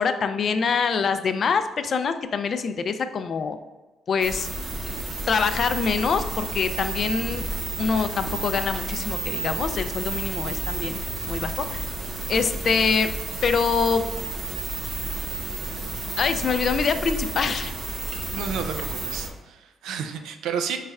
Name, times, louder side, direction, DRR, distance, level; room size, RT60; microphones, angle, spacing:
voice 1, 0.0-3.6 4.1-4.5 4.9-5.0 5.3-7.5 7.8-11.8 12.3-13.1 13.4-14.0 16.2-17.7, left 5 dB, 50° left, 9 dB, 0.3 m, -25 dB
sound 1, 4.2-19.3, right 2 dB, 50° right, 0.8 m, -31 dB
voice 2, 18.3-20.8, right 6 dB, 85° right, 7 dB, 0.4 m, -31 dB
5.2 x 3.2 x 2.3 m, 1.2 s
cardioid pair, 90°, 0 cm